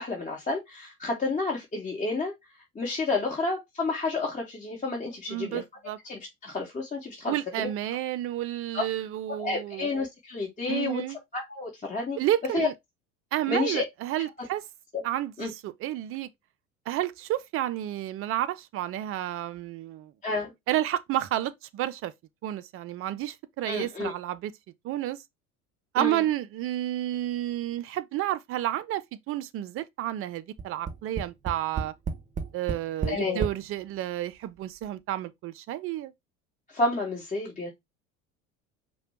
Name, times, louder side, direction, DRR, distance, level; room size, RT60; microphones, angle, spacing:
voice 1, 0.0-2.3 2.7-5.6 6.0-7.7 8.7-8.9 9.3-11.0 11.3-12.2 12.5-12.7 13.5-13.9 14.9-15.0 15.4-15.5 20.2-20.5 23.6-24.1 25.9-26.2 33.1-33.5 36.7-37.7, left 3 dB, 15° left, 1.3 m, -30 dB
voice 2, 5.3-6.0 7.3-9.9 10.7-11.2 12.2-12.7 13.3-14.6 15.0-16.3 16.9-20.1 20.7-22.1 22.4-24.5 24.8-25.2 25.9-31.9 32.5-36.1, right 13 dB, 35° right, 0.5 m, -31 dB
Tap, 30.6-33.6 34.4-34.5 34.8-34.9, right 5 dB, 15° right, 0.9 m, -32 dB
5.0 x 2.3 x 4.2 m
figure-of-eight pair, 65°, 43 cm